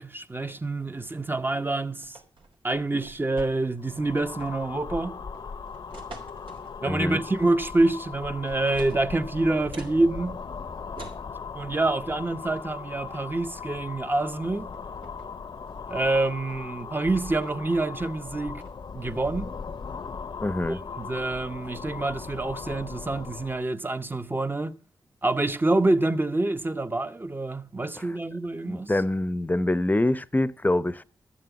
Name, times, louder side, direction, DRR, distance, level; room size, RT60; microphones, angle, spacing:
voice 1, 0.0-2.2 2.6-5.2 6.8-10.4 11.5-14.7 15.9-18.6 18.9-19.5 20.7-24.8 25.2-28.9, right 2 dB, 25° right, 1.0 m, -27 dB
sound 1, 2.0-3.9 4.2-4.7 5.3-6.8 7.8-8.2 8.5-10.0 10.9-11.3 12.6-12.7 13.1-13.4 14.3-14.4 14.7-15.3 15.7-16.9 17.4-17.7 18.0-18.7, right 3 dB, 75° right, 3.6 m, -47 dB
sound 2, 3.8-23.7, left 5 dB, 55° left, 0.7 m, -39 dB
voice 2, 6.9-7.2 20.4-20.8 28.0-28.1 28.7-31.0, left 1 dB, 20° left, 0.8 m, -25 dB
13.0 x 7.6 x 7.1 m
cardioid pair, 50°, 9 cm